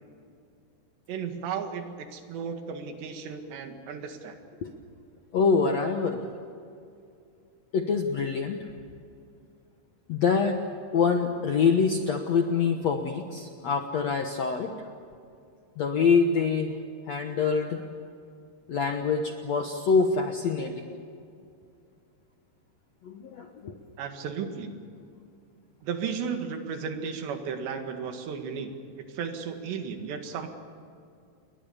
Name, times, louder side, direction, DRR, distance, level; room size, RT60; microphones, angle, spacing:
voice 1, 1.1-4.4 24.0-24.7 25.8-28.7 29.0-30.5, right 6 dB, 85° right, 5 dB, 4.2 m, -34 dB
voice 2, 5.3-6.2 7.7-8.6 10.1-10.6 10.9-14.7 15.8-16.8 17.1-17.8 18.7-20.9 23.0-23.7, left 5 dB, 70° left, 4 dB, 1.7 m, -25 dB
29.5 x 22.0 x 7.2 m, 2.4 s
omnidirectional pair, 4.8 m